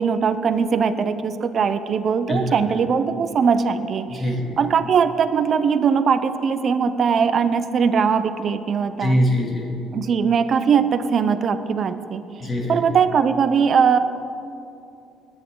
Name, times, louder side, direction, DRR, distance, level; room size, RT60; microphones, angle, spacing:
voice 1, 0.0-4.2 4.6-9.2 9.9-12.2 12.7-14.0, right 6 dB, 45° right, 11 dB, 0.7 m, -20 dB
voice 2, 2.3-2.6 4.1-4.6 9.0-9.8 12.4-12.8, equal, 30° left, -1 dB, 2.7 m, -23 dB
20.5 x 10.0 x 3.9 m, 2.7 s
cardioid pair, 130°, 0 cm